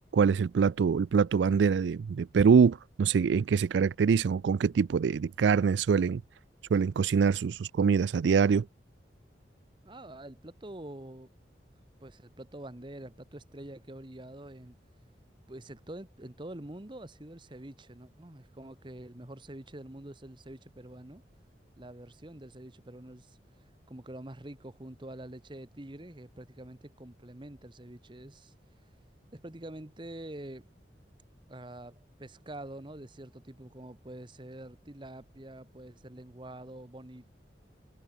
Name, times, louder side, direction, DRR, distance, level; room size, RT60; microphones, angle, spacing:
voice 1, 0.1-6.2 6.7-8.7, right 6 dB, 80° right, 0.4 m, -24 dB
voice 2, 9.8-11.3 12.0-14.8 15.5-21.2 21.8-23.4 23.9-28.5 29.3-30.6 31.5-37.3, right 1 dB, 25° right, 1.2 m, -46 dB
head